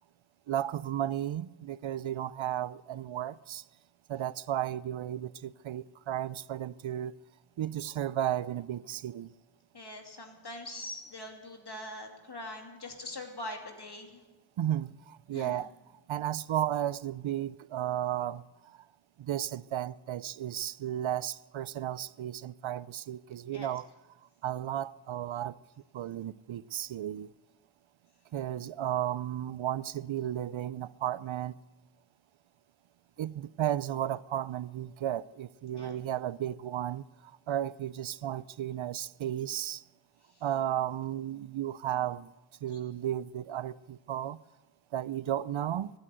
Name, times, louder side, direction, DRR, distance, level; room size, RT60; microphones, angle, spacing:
voice 1, 0.5-3.6 4.1-7.1 7.6-9.3 14.6-15.7 16.1-18.8 19.2-23.9 24.4-25.6 25.9-27.3 28.3-31.5 33.2-39.8 40.4-42.3 42.6-44.4 44.9-45.9, right 11 dB, 80° right, 0.5 m, -34 dB
voice 2, 9.7-14.2 15.3-15.7 23.5-23.7 35.7-36.0 42.7-42.8, left 1 dB, 55° left, 2.7 m, -43 dB
15.5 x 9.9 x 8.0 m
cardioid pair, 40°, 47 cm